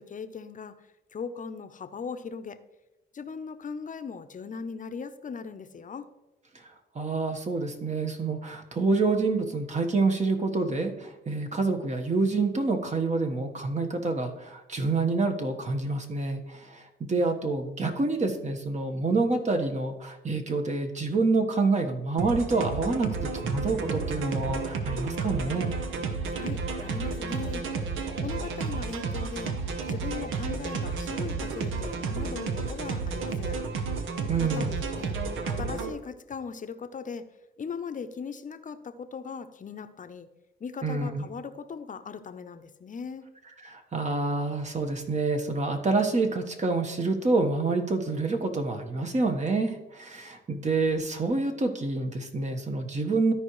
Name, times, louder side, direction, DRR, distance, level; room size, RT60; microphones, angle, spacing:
voice 1, 0.0-2.6 3.1-6.1 26.3-27.6 28.2-29.5 29.9-33.6 34.4-37.3 37.6-40.3 40.6-43.3, left 6 dB, 40° left, 9 dB, 0.8 m, -39 dB
voice 2, 6.9-16.8 17.1-25.7 34.3-34.7 40.8-41.2 43.6-53.3, right 3 dB, 35° right, 4 dB, 1.3 m, -27 dB
sound 1, 22.2-35.9, right 4 dB, 75° right, 0.9 m, -31 dB
13.0 x 4.9 x 3.1 m, 1.0 s
supercardioid pair, 70°, 21 cm